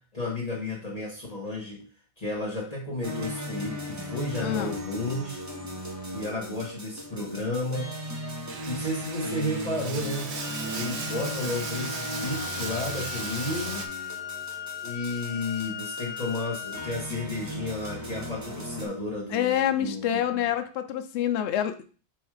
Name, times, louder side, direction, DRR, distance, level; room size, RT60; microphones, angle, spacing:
voice 1, 0.1-1.8 2.2-5.4 6.1-7.9 8.7-10.3 10.5-13.8 14.8-20.5, left 2 dB, 35° left, -4 dB, 1.4 m, -32 dB
sound 1, 3.0-18.9, equal, 15° right, 1.0 m, -37 dB
voice 2, 4.4-4.8 19.3-21.9, left 10 dB, 75° left, 8 dB, 0.9 m, -27 dB
Bathtub (filling or washing), 8.5-13.9, right 5 dB, 70° right, 1.1 m, -37 dB
Wind instrument woodwind instrument, 10.4-17.1, left 9 dB, 10° left, 1.3 m, -38 dB
7.8 x 2.6 x 4.8 m, 0.38 s
omnidirectional pair, 1.2 m